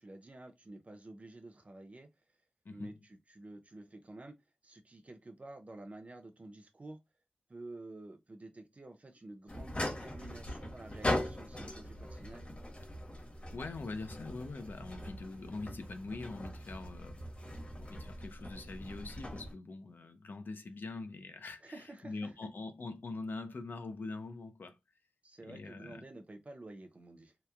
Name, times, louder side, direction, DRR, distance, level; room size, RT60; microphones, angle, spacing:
voice 1, 0.0-2.1 2.7-4.4 4.6-7.0 7.5-12.4 21.6-22.3 25.2-27.3, right 2 dB, 45° right, 0.6 m, -50 dB
sound 1, 9.5-19.5, left 1 dB, 40° left, 0.9 m, -40 dB
voice 2, 13.5-17.2 17.8-24.8 25.4-26.0, left 3 dB, 85° left, 0.4 m, -43 dB
2.9 x 2.1 x 2.4 m
wide cardioid pair, 70°, 3 cm